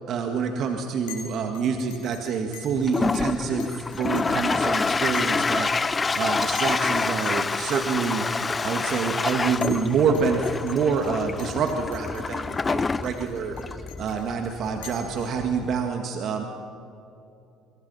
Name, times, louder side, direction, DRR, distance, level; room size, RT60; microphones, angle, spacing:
voice 1, 0.1-16.4, right 5 dB, 55° right, 4 dB, 1.9 m, -27 dB
Chink clink, 1.1-1.3 1.5-3.2 3.6-5.6 5.9-6.2 6.5-9.9 10.1-10.8 11.0-11.1 11.4-12.2 12.5-12.6 13.0-15.6, left 8 dB, 85° left, 5.0 m, -45 dB
Toilet flush, 2.7-15.9, left 4 dB, 25° left, 0.5 m, -27 dB
24.0 x 24.0 x 5.7 m, 2.7 s
hypercardioid pair, 70°, 0 cm